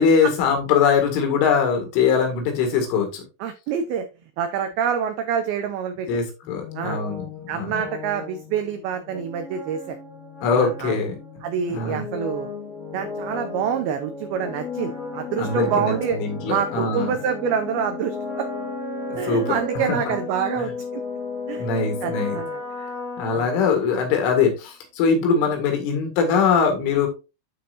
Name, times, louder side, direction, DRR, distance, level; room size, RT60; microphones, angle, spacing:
voice 1, 0.0-3.2 6.1-7.8 10.4-11.2 11.7-12.1 15.4-17.1 19.2-19.6 19.9-20.0 20.6-20.7 21.6-22.4 23.2-27.1, left 5 dB, 90° left, 4 dB, 4.4 m, -22 dB
voice 2, 3.4-4.1 4.4-6.1 6.8-7.0 7.5-10.0 10.6-11.0 11.4-12.5 12.9-16.2 16.5-18.5 19.2-21.0 21.5-21.7 22.0-22.6 23.3-23.5, right 7 dB, 85° right, 7 dB, 2.1 m, -27 dB
sound 1, 6.4-24.1, left 3 dB, 35° left, 1.3 m, -34 dB
12.5 x 4.3 x 2.5 m, 0.27 s
omnidirectional pair, 5.4 m